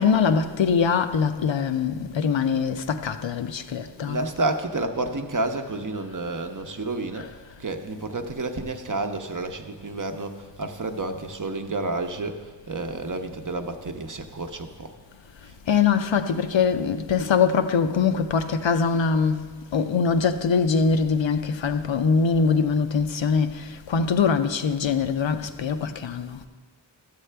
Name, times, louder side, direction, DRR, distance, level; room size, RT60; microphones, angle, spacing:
voice 1, 0.0-4.2 7.2-7.3 15.7-19.4 19.7-26.4, left 5 dB, 90° left, 0.5 m, -23 dB
voice 2, 4.0-7.3 7.6-14.9, right 2 dB, 45° right, 0.7 m, -30 dB
12.5 x 7.4 x 3.3 m
wide cardioid pair, 40°, 44 cm